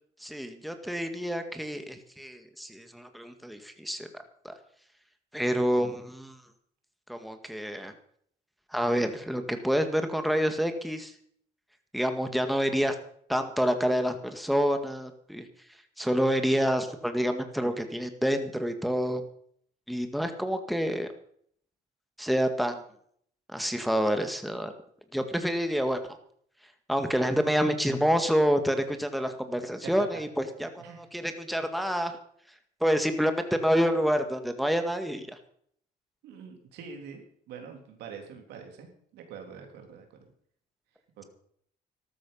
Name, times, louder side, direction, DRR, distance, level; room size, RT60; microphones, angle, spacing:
voice 1, 0.2-4.1 4.4-4.5 5.3-6.4 7.1-7.9 8.7-11.1 11.9-13.0 13.3-15.5 16.0-19.2 19.9-21.1 22.2-22.8 23.5-24.7 25.1-26.0 26.9-32.2 32.8-35.4, equal, ahead, 7 dB, 1.9 m, -28 dB
voice 2, 36.2-40.3 41.2-41.3, right 6 dB, 90° right, 4 dB, 3.3 m, -45 dB
13.0 x 13.0 x 5.6 m, 0.63 s
cardioid pair, 90°, 17 cm